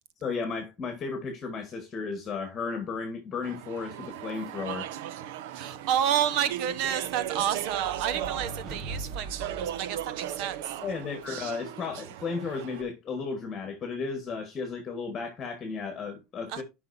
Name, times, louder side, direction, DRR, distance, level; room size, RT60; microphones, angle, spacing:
voice 1, 0.2-4.9 10.8-16.6, left 4 dB, 25° left, 1.7 m, -34 dB
Speech / Chatter, 3.4-12.8, right 11 dB, 80° right, 0.7 m, -37 dB
voice 2, 5.5-10.8 16.5-16.6, right 9 dB, 60° right, 1.1 m, -30 dB
sound 1, 6.9-10.7, right 2 dB, 35° right, 1.7 m, -42 dB
12.0 x 5.5 x 2.7 m
cardioid pair, 155°, 0 cm